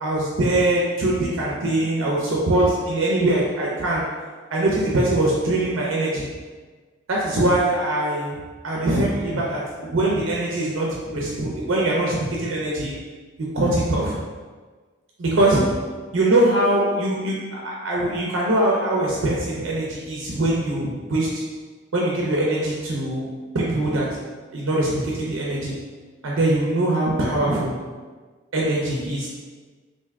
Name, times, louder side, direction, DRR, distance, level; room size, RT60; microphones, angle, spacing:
voice 1, 0.0-4.1 4.5-6.3 7.1-8.4 8.6-12.9 13.4-14.2 15.2-15.7 16.1-17.4 17.6-21.5 21.9-23.3 23.5-24.2 24.5-25.7 26.2-27.8 28.5-29.3, right 1 dB, 70° right, -4 dB, 0.6 m, -22 dB
3.4 x 2.6 x 3.4 m, 1.4 s
head